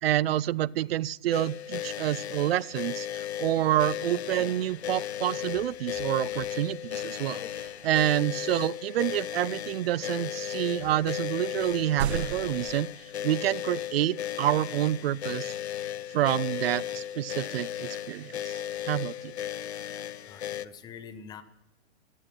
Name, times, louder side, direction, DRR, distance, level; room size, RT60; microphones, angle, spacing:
voice 1, 0.0-12.9 13.2-15.5 16.1-19.3, right 13 dB, 65° right, 22 dB, 0.5 m, -28 dB
sound 1, 1.3-20.7, left 11 dB, 90° left, 0.8 m, -35 dB
sound 2, 4.3-4.9 5.5-6.6 7.1-8.0 9.9-10.3 10.8-11.4, left 7 dB, 55° left, 1.7 m, -49 dB
sound 3, 11.6-12.8, right 9 dB, 90° right, 1.0 m, -33 dB
voice 2, 20.2-21.4, left 7 dB, 15° left, 12 dB, 0.7 m, -45 dB
15.5 x 10.5 x 7.6 m, 0.98 s
hypercardioid pair, 150°, 32 cm